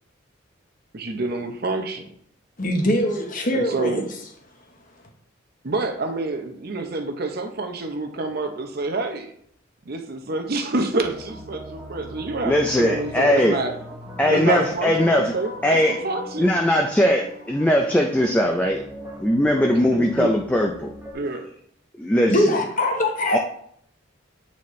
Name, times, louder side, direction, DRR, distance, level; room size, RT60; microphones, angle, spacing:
voice 1, 0.9-2.1 3.5-4.0 5.6-9.3 9.9-13.7 14.3-16.5 19.9-20.3 21.1-21.4, right 2 dB, 50° right, 5 dB, 0.7 m, -27 dB
voice 2, 2.6-4.0 22.3-23.4, left 1 dB, 40° left, 2 dB, 1.0 m, -22 dB
sound 1, 11.0-21.1, left 1 dB, 10° right, 1.0 m, -39 dB
voice 3, 12.4-13.6 14.2-15.3 15.6-16.0 16.4-18.8 19.2-20.9 22.0-22.6 23.3-23.4, equal, 5° left, 2 dB, 0.3 m, -20 dB
8.3 x 4.2 x 3.1 m, 0.67 s
head